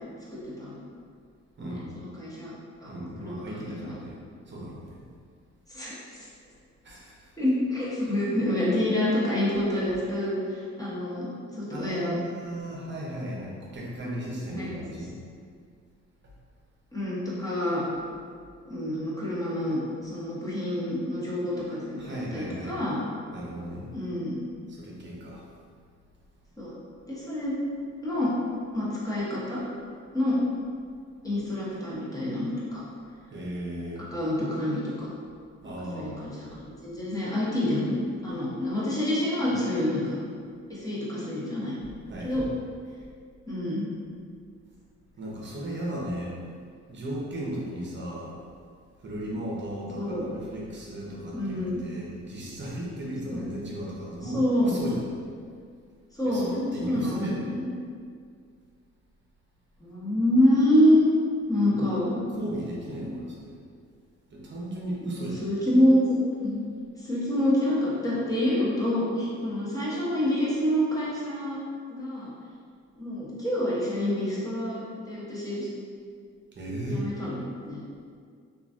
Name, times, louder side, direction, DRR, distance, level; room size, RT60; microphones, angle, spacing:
voice 1, 0.3-0.8 1.7-2.5 2.8-2.9 3.2-3.9 5.7-6.3 7.4-12.2 14.5-14.8 16.9-17.8 18.6-23.0 23.9-24.4 26.6-26.8 27.1-27.6 28.0-28.3 28.7-29.6 30.1-30.4 31.2-32.8 34.1-35.1 35.6-36.5 36.8-38.0 38.2-40.2 40.7-41.7 42.2-42.4 43.5-43.9 50.0-50.2 51.3-51.8 53.3-53.5 54.2-54.8 56.1-56.5 56.8-57.7 59.8-61.1 61.5-62.3 63.0-63.2 65.0-66.2 66.4-66.6 67.0-71.6 71.9-72.3 73.0-75.7 76.9-77.4 77.6-77.8, left 1 dB, 10° left, -8 dB, 0.9 m, -27 dB
voice 2, 1.6-1.9 2.9-4.2 4.5-5.0 6.8-7.2 11.7-15.1 22.0-22.8 23.3-23.9 24.7-25.4 33.3-34.0 35.6-36.3 42.1-42.4 45.2-46.3 46.9-48.4 49.0-55.0 56.3-57.5 61.7-61.9 62.3-63.6 64.3-65.4 76.5-77.1, right 1 dB, 40° right, -4 dB, 0.8 m, -35 dB
3.0 x 2.4 x 2.5 m, 2.1 s
cardioid pair, 90°, 30 cm